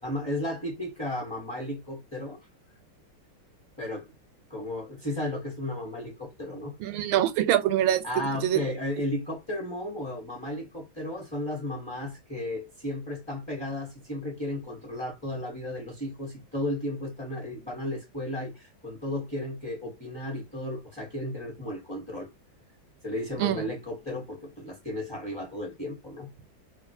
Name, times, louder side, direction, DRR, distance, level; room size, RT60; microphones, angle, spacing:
voice 1, 0.0-2.5 3.8-4.1 4.5-6.7 8.0-22.3 23.0-26.3, left 1 dB, 5° left, 0.8 m, -34 dB
voice 2, 6.8-8.6 23.4-23.6, right 12 dB, 90° right, 1.4 m, -25 dB
3.1 x 2.4 x 2.7 m
omnidirectional pair, 2.2 m